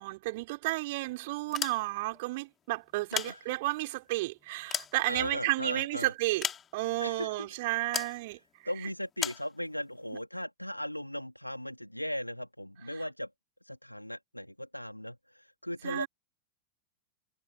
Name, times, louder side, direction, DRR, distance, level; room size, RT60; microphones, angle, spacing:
voice 1, 0.0-6.5 6.7-8.4 10.1-10.2 12.9-13.0 15.8-16.1, right 21 dB, 50° right, 5.1 m, -32 dB
sound 1, 1.4-2.2 2.9-3.9 4.4-5.6 6.4-7.0 7.9-8.2 9.2-9.5, left 8 dB, 25° left, 3.1 m, -36 dB
voice 2, 3.1-3.6 5.0-6.1 7.0-7.5 8.6-13.3 13.6-16.1, equal, 90° left, 2.9 m, -38 dB
figure-of-eight pair, 90°, 0 cm